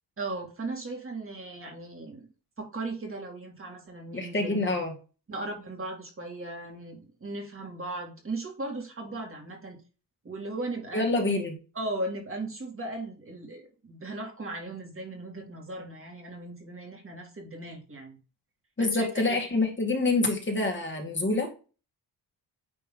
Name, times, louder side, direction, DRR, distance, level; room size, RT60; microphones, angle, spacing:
voice 1, 0.2-2.3 2.6-4.7 5.3-9.8 10.2-11.1 11.8-18.2 18.8-19.4, right 2 dB, 30° right, 1 dB, 2.2 m, -37 dB
voice 2, 4.1-4.9 10.9-11.6 18.8-21.5, left 2 dB, 25° left, 1 dB, 2.1 m, -26 dB
9.6 x 3.5 x 3.8 m, 0.34 s
cardioid pair, 125°, 42 cm